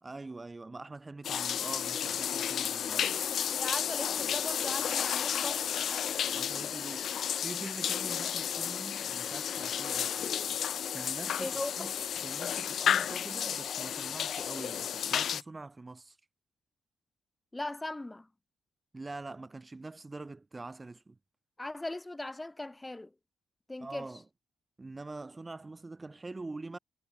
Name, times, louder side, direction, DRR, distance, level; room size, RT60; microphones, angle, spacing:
voice 1, 0.0-3.1 6.3-10.2 10.9-11.9 12.2-16.2 18.9-21.2 23.8-24.2 24.8-26.8, right 3 dB, 20° right, 2.0 m, -44 dB
sound 1, 1.2-15.4, left 9 dB, 60° left, 0.5 m, -32 dB
voice 2, 3.6-5.7 11.4-11.9 17.5-18.3 21.6-23.1 23.7-24.1, left 2 dB, 15° left, 2.9 m, -39 dB
cardioid pair, 90°, 0 cm